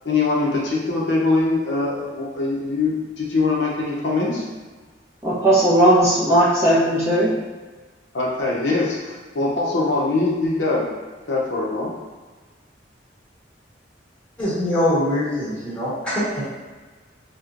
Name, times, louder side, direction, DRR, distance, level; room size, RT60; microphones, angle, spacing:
voice 1, 0.0-4.5 8.1-10.9 11.3-11.9, left 3 dB, 70° left, -4 dB, 0.6 m, -22 dB
voice 2, 5.2-7.3, right 1 dB, 15° right, -9 dB, 0.7 m, -17 dB
voice 3, 14.4-16.1, left 1 dB, 5° left, -10 dB, 1.3 m, -23 dB
4.3 x 2.1 x 2.5 m, 1.3 s
head